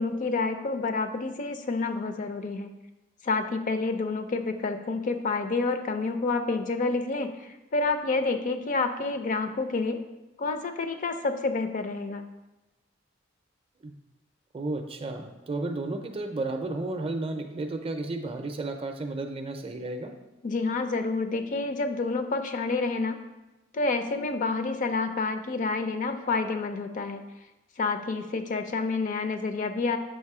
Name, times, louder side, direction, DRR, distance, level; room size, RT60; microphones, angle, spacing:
voice 1, 0.0-2.7 3.2-10.0 10.4-12.3 20.4-23.2 23.7-27.2 27.8-30.0, left 3 dB, 40° left, 8 dB, 0.4 m, -28 dB
voice 2, 14.5-20.1, right 2 dB, 30° right, 6 dB, 0.5 m, -33 dB
7.4 x 3.0 x 4.8 m, 1.0 s
head